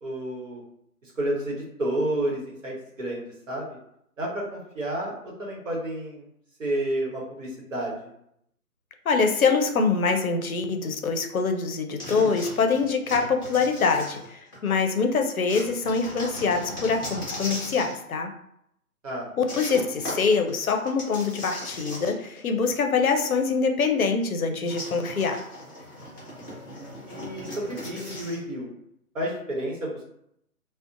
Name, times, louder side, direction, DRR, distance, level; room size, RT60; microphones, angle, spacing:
voice 1, 0.0-0.6 1.0-3.8 4.2-6.3 6.6-8.1 19.0-19.3 27.1-28.7 29.1-30.0, right 1 dB, 55° right, -4 dB, 1.0 m, -30 dB
voice 2, 9.1-18.3 19.4-25.4, left 4 dB, 65° left, 5 dB, 0.5 m, -24 dB
sound 1, 12.0-14.7 15.5-18.0 19.5-22.4 22.7-22.8 24.6-28.4, left 1 dB, 15° left, 0.6 m, -38 dB
2.5 x 2.1 x 2.5 m, 0.74 s
figure-of-eight pair, 140°, 46 cm